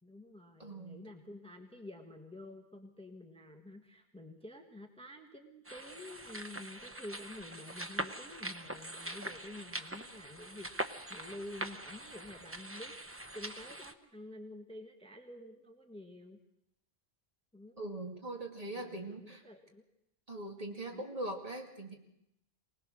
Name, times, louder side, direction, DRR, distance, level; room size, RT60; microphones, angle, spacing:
voice 1, 0.0-12.9 13.3-16.4 17.5-17.8 18.7-19.9 20.9-21.1, left 1 dB, 5° left, 4 dB, 1.4 m, -49 dB
voice 2, 0.6-1.1 17.8-19.4 20.3-22.0, right 1 dB, 35° right, 2 dB, 2.4 m, -41 dB
sound 1, 5.6-13.9, right 1 dB, 15° right, 0.7 m, -43 dB
24.0 x 18.5 x 6.3 m, 0.82 s
omnidirectional pair, 1.1 m